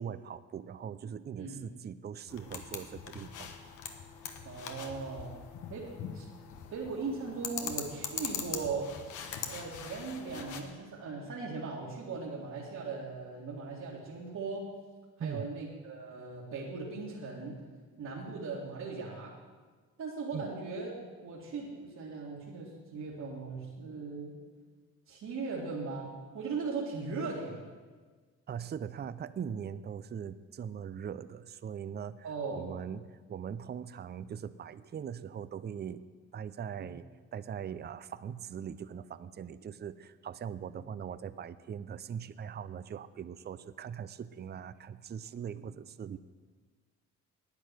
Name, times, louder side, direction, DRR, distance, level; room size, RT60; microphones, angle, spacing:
voice 1, 0.0-3.5 15.2-15.5 20.3-20.5 28.5-36.0 36.3-37.1 37.3-46.2, right 8 dB, 35° right, 15 dB, 0.5 m, -41 dB
voice 2, 1.4-1.7 4.4-5.3 5.7-5.9 6.1-6.3 6.7-14.7 15.2-17.6 18.0-19.3 20.0-24.3 25.1-26.1 26.3-27.6 32.2-32.7 36.8-36.9, right 4 dB, 65° right, -5 dB, 2.5 m, -39 dB
sound 1, 2.3-10.6, left 7 dB, 85° left, 1.3 m, -42 dB
10.5 x 9.3 x 7.8 m, 1.4 s
cardioid pair, 90°, 30 cm